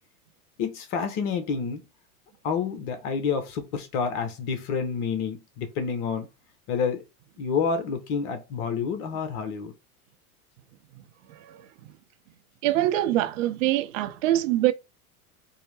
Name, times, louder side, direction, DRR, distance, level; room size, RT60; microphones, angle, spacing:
voice 1, 0.6-1.8 2.4-6.3 6.7-7.0 7.4-9.7, left 6 dB, 50° left, 1.0 m, -28 dB
voice 2, 11.3-11.9 12.6-14.7, right 14 dB, 55° right, 0.7 m, -25 dB
4.5 x 2.1 x 3.2 m
hypercardioid pair, 95°, 45 cm